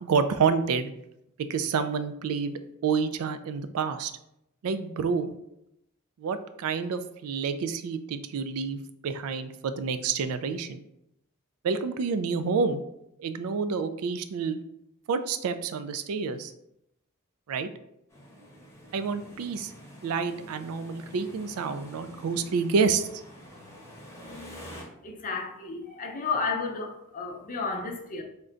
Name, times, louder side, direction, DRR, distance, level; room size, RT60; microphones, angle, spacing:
voice 1, 0.0-0.9 1.4-4.1 4.6-5.3 6.2-10.8 11.6-12.8 13.2-14.6 15.1-16.5 17.5-17.7 18.9-19.7 20.0-23.2, right 5 dB, 75° right, 0.3 m, -28 dB
sound 1, 18.1-24.8, equal, 15° left, 0.9 m, -47 dB
voice 2, 25.0-28.2, left 4 dB, 40° left, 0.6 m, -32 dB
3.6 x 2.2 x 3.8 m
head